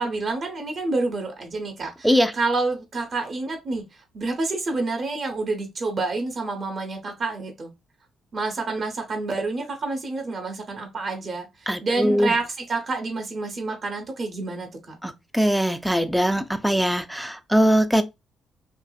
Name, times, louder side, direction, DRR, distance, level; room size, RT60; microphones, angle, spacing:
voice 1, 0.0-3.9 4.1-7.7 8.3-15.0, right 3 dB, 45° right, 0.7 m, -28 dB
voice 2, 11.7-12.3 15.0-18.0, equal, ahead, 0.4 m, -21 dB
2.6 x 2.4 x 2.3 m
cardioid pair, 90°, 0 cm